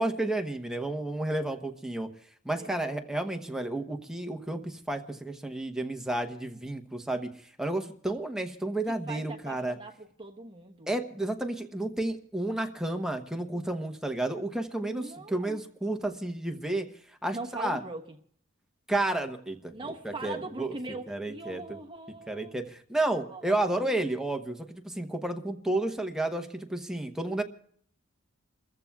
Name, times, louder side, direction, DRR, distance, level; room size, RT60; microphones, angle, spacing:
voice 1, 0.0-2.1 2.4-7.3 7.6-9.8 10.9-16.9 17.2-17.8 18.9-19.7 20.0-20.8 21.1-21.8 22.3-27.4, right 1 dB, 5° right, 0.9 m, -31 dB
voice 2, 2.6-3.1 9.1-10.9 14.8-15.6 17.3-18.2 19.7-22.6 23.0-24.0, right 3 dB, 25° right, 1.1 m, -41 dB
29.0 x 14.5 x 2.3 m
head